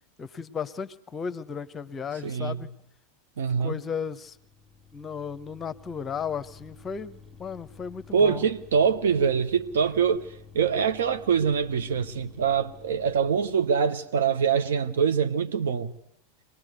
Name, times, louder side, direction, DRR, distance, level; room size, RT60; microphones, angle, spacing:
voice 1, 0.2-2.7 3.6-4.4 4.9-8.5, left 6 dB, 25° left, 0.9 m, -35 dB
voice 2, 2.2-2.6 3.4-3.8 8.1-10.3 10.5-15.9, right 6 dB, 65° right, 1.1 m, -24 dB
sound 1, 4.2-13.9, left 5 dB, ahead, 1.8 m, -51 dB
24.0 x 19.0 x 8.1 m
figure-of-eight pair, 85°, 0 cm